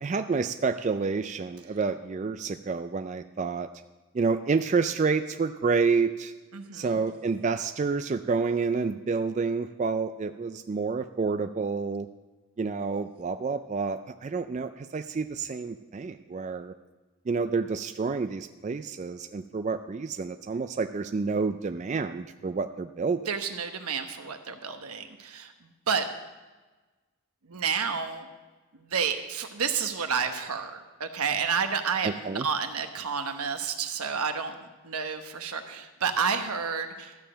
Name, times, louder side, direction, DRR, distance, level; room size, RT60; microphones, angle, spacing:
voice 1, 0.0-3.7 4.1-6.3 6.7-12.1 12.6-16.7 17.3-23.2 32.0-32.5, right 4 dB, 35° right, 9 dB, 0.3 m, -29 dB
voice 2, 6.5-7.1 23.3-26.1 27.4-28.3 28.7-37.3, right 6 dB, 90° right, 7 dB, 1.1 m, -30 dB
13.0 x 6.9 x 6.2 m, 1.2 s
head